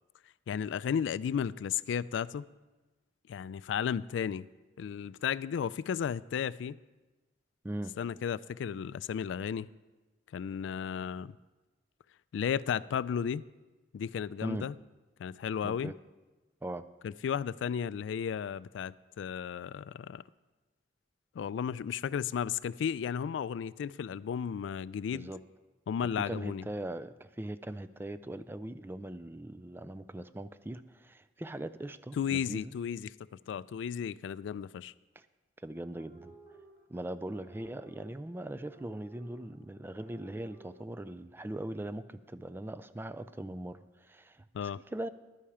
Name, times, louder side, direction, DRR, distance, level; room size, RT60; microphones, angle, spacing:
voice 1, 0.5-2.5 3.3-4.5 4.8-6.8 8.0-9.7 10.3-11.4 12.3-13.4 13.9-14.7 15.2-15.9 17.0-20.2 21.3-25.3 25.9-26.7 32.2-33.1 33.5-34.9 44.5-44.8, left 7 dB, 85° left, 0.3 m, -34 dB
voice 2, 7.6-8.0 14.4-14.7 15.6-16.0 16.6-16.8 25.1-25.4 26.0-32.7 35.2-35.3 35.6-36.3 36.9-45.1, right 1 dB, 10° right, 0.3 m, -40 dB
sound 1, 36.0-40.8, right 3 dB, 35° right, 3.7 m, -57 dB
11.5 x 8.6 x 4.9 m
head